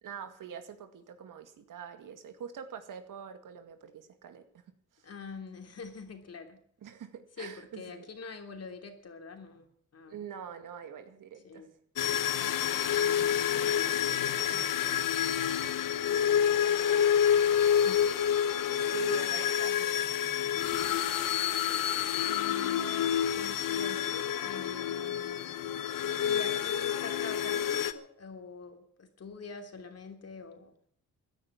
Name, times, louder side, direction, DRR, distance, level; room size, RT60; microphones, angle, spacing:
voice 1, 0.0-4.5 4.9-5.1 6.8-8.1 10.0-11.7 18.8-20.0, right 8 dB, 75° right, 9 dB, 2.1 m, -44 dB
voice 2, 5.0-6.6 7.4-9.7 9.9-10.2 11.4-11.7 13.5-14.0 16.1-18.1 21.6-25.7 26.2-30.7, left 4 dB, 50° left, 5 dB, 3.2 m, -46 dB
sound 1, 12.0-27.9, left 9 dB, 80° left, 1.1 m, -28 dB
15.5 x 10.0 x 7.4 m, 0.64 s
cardioid pair, 100°, 32 cm